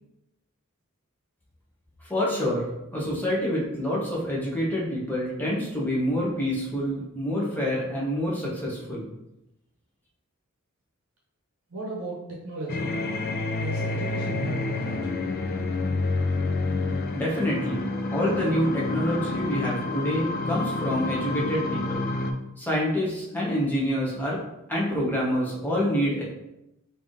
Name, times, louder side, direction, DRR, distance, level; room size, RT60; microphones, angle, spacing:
voice 1, 2.0-9.0 17.1-22.1 22.6-24.4 24.7-26.2, equal, 10° left, -5 dB, 1.0 m, -27 dB
voice 2, 11.7-13.0 13.6-15.0, right 1 dB, 65° right, -4 dB, 0.8 m, -35 dB
sound 1, 12.7-22.3, left 2 dB, 45° left, 0.4 m, -28 dB
3.4 x 2.7 x 3.6 m, 0.89 s
head